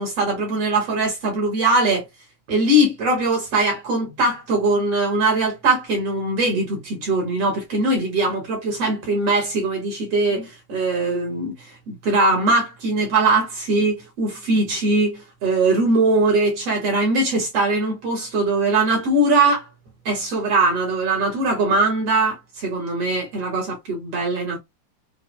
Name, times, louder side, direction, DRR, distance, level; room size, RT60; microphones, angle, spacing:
voice 1, 0.0-2.0 2.5-11.5 11.9-19.7 20.1-24.6, right 2 dB, 50° right, 2.2 m, -21 dB
6.3 x 2.6 x 2.3 m
omnidirectional pair, 4.2 m